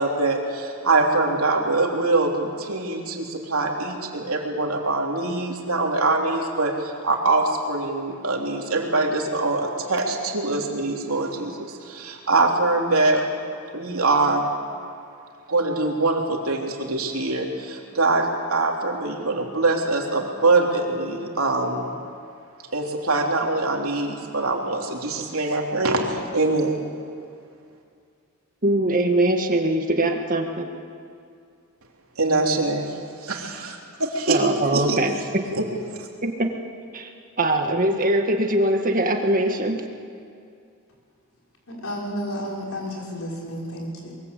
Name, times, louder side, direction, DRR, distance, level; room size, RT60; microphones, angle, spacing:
voice 1, 0.0-13.2 13.7-14.5 15.5-21.9 22.7-26.8 32.2-32.9 33.2-34.4 34.7-35.0 35.5-35.6 36.0-36.1, right 2 dB, 75° right, 1 dB, 3.3 m, -23 dB
voice 2, 28.6-30.7 34.3-35.5 36.2-36.5 36.9-37.1 37.4-39.8, right 1 dB, 40° right, 4 dB, 1.9 m, -22 dB
voice 3, 41.7-44.1, equal, 70° left, -2 dB, 5.9 m, -31 dB
22.5 x 22.5 x 8.4 m, 2.3 s
head